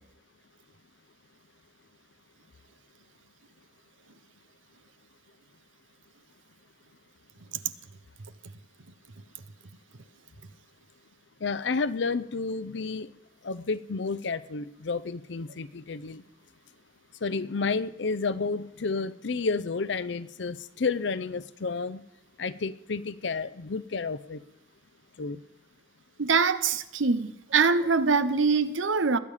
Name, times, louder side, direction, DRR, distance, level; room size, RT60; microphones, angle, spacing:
voice 1, 11.4-13.1 13.4-16.2 17.2-22.0 22.4-24.4 25.2-25.4, left 4 dB, 65° left, 0.6 m, -31 dB
voice 2, 26.2-29.2, right 4 dB, 90° right, 0.8 m, -24 dB
20.5 x 8.8 x 5.0 m
head